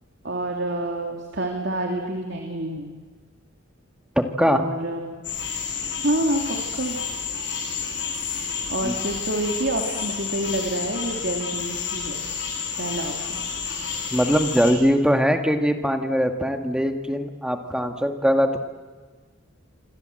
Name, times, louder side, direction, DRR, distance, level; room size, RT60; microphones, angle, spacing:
voice 1, 0.2-2.9 4.4-5.2 6.0-7.0 8.7-12.2 12.8-13.4, right 1 dB, 55° right, 2 dB, 2.8 m, -28 dB
voice 2, 4.2-4.7 8.8-8.9 14.1-18.6, equal, 5° right, 5 dB, 1.9 m, -21 dB
sound 1, 5.2-14.7, left 6 dB, 60° left, 7.6 m, -30 dB
27.5 x 24.5 x 7.9 m, 1.4 s
head